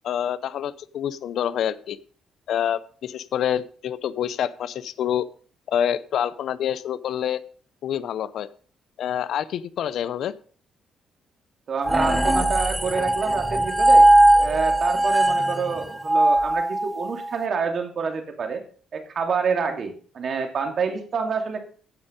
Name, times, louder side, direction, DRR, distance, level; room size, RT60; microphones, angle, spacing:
voice 1, 0.0-2.0 2.5-5.3 5.7-7.4 7.8-8.5 9.0-10.3, left 9 dB, 70° left, 16 dB, 0.6 m, -27 dB
voice 2, 11.7-14.1 14.4-18.6 18.9-21.6, right 5 dB, 55° right, 5 dB, 2.7 m, -27 dB
sound 1, 11.8-17.3, right 1 dB, 5° right, 1.3 m, -19 dB
16.0 x 5.5 x 5.2 m, 0.43 s
cardioid pair, 90°, 0 cm